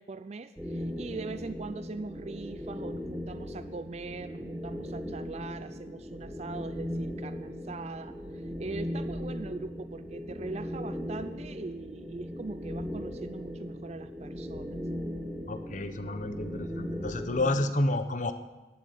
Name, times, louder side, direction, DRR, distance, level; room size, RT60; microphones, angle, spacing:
voice 1, 0.0-14.8, right 3 dB, 35° right, 11 dB, 0.4 m, -41 dB
sound 1, 0.6-17.7, equal, 5° right, 1.4 m, -38 dB
voice 2, 15.5-18.3, left 2 dB, 45° left, 9 dB, 0.9 m, -30 dB
12.5 x 7.8 x 8.5 m, 1.2 s
head